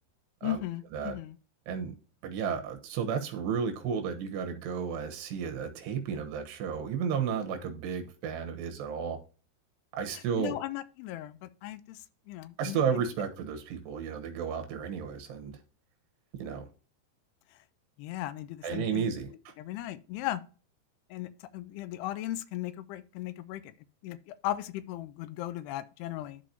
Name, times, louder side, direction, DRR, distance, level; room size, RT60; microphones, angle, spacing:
voice 1, 0.4-1.4 10.1-12.8 18.0-20.4 21.1-23.7 24.0-26.4, left 14 dB, 80° left, 2.5 m, -37 dB
voice 2, 2.2-9.2 9.9-10.6 12.6-15.5 16.3-16.6 18.6-19.5, right 7 dB, 80° right, 3.4 m, -33 dB
12.5 x 4.5 x 2.7 m
omnidirectional pair, 4.8 m